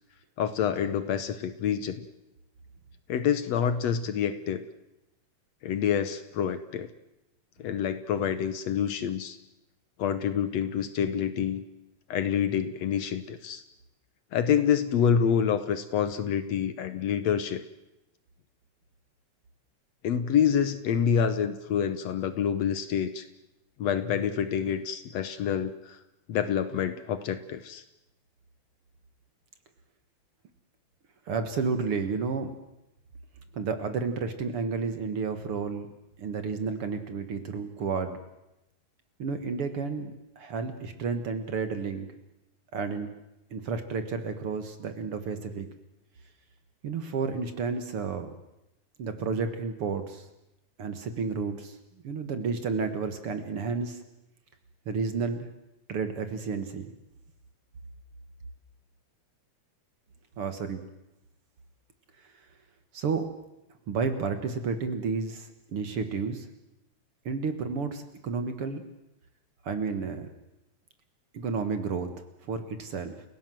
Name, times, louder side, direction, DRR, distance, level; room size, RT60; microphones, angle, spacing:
voice 1, 0.4-2.1 3.1-4.7 5.6-6.9 7.6-9.4 10.0-11.6 12.1-13.6 14.3-17.6 20.0-23.3 23.8-26.0 26.3-27.8, left 8 dB, 65° left, 12 dB, 2.0 m, -27 dB
voice 2, 31.3-32.5 33.5-35.9 36.2-38.2 39.2-42.1 42.7-43.1 43.5-45.7 46.8-48.3 49.0-50.3 50.8-51.8 52.0-54.0 54.9-55.5 55.9-56.9 60.4-60.8 62.9-63.3 63.9-66.5 67.3-68.8 69.6-70.3 71.3-72.1 72.5-73.2, right 5 dB, 50° right, 9 dB, 2.2 m, -31 dB
30.0 x 17.0 x 7.7 m, 0.92 s
omnidirectional pair, 3.5 m